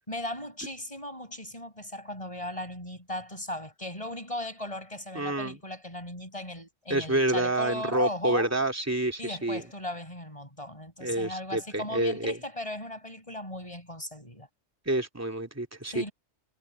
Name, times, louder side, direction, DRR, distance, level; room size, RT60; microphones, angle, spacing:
voice 1, 0.1-8.5 9.2-14.5 15.9-16.1, left 1 dB, 25° left, 6.9 m, -37 dB
voice 2, 5.1-5.6 6.9-9.6 11.0-12.4 14.9-16.1, right 1 dB, 10° right, 2.8 m, -28 dB
omnidirectional pair, 1.2 m